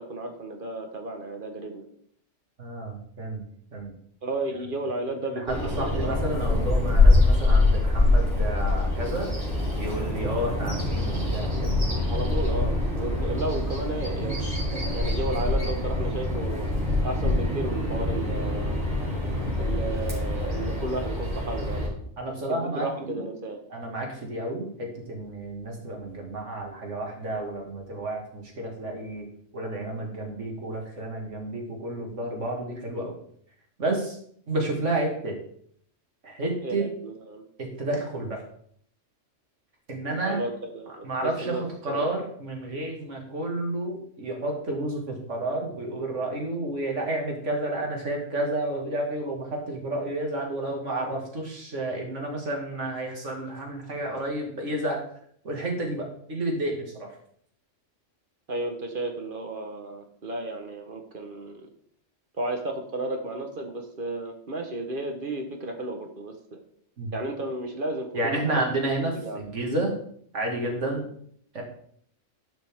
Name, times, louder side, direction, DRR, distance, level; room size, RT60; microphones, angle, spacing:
voice 1, 0.0-1.8 4.2-6.3 12.1-14.6 14.9-16.7 17.0-18.8 19.6-21.9 22.5-23.6 36.6-37.4 40.1-42.2 58.5-61.7 62.4-66.6 67.1-68.6 69.2-69.4, right 2 dB, 45° right, 4 dB, 1.5 m, -33 dB
voice 2, 2.6-3.4 3.7-3.9 5.3-9.3 9.8-11.7 19.3-19.6 22.2-23.2 23.7-29.3 29.5-33.1 33.8-34.2 34.5-35.4 36.2-36.8 37.6-38.4 39.9-40.4 41.0-55.0 55.4-57.1 67.0-67.1 68.1-69.9 70.3-71.1 71.5-71.6, right 1 dB, 75° right, 0 dB, 2.5 m, -31 dB
Bird vocalization bird call bird song, 5.5-21.9, left 2 dB, 20° right, 3.5 m, -24 dB
12.0 x 6.0 x 3.7 m, 0.63 s
omnidirectional pair, 1.3 m